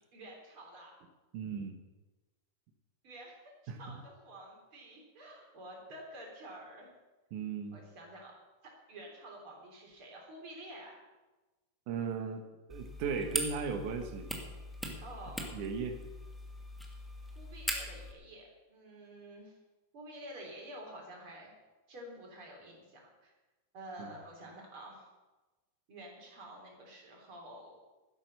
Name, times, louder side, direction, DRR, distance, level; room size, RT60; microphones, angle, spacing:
voice 1, 0.1-1.0 3.0-6.9 7.7-8.3 8.9-11.0 15.0-15.5 17.3-19.6 19.9-21.5 21.9-23.3 23.7-25.1 25.9-27.8, right 1 dB, 45° right, -1 dB, 4.2 m, -49 dB
voice 2, 1.3-1.8 3.7-4.0 7.3-7.8 11.9-14.3 14.9-15.0 15.5-16.0 24.0-24.1, right 5 dB, 80° right, 5 dB, 2.6 m, -37 dB
sound 1, 12.7-18.1, equal, ahead, 1.0 m, -40 dB
12.5 x 10.5 x 6.5 m, 1.2 s
omnidirectional pair, 3.4 m